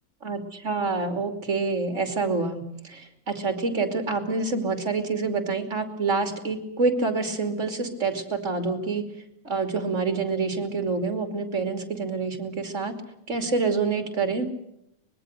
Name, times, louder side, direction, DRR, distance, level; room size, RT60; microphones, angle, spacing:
voice 1, 0.2-9.0 9.4-12.9 13.3-14.5, right 4 dB, 35° right, 6 dB, 3.1 m, -27 dB
24.5 x 21.5 x 6.6 m, 0.77 s
omnidirectional pair, 2.1 m